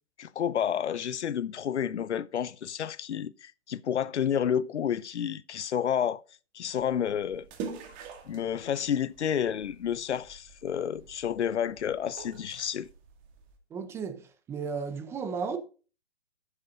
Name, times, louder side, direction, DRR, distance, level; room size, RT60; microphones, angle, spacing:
voice 1, 0.2-6.2 6.5-7.5 8.3-12.9, left 9 dB, 80° left, 0.7 m, -30 dB
sound 1, 6.7-13.6, right 5 dB, 25° right, 2.0 m, -46 dB
voice 2, 13.7-15.6, right 5 dB, 10° right, 0.6 m, -34 dB
11.0 x 8.2 x 2.5 m
hypercardioid pair, 145°, 34 cm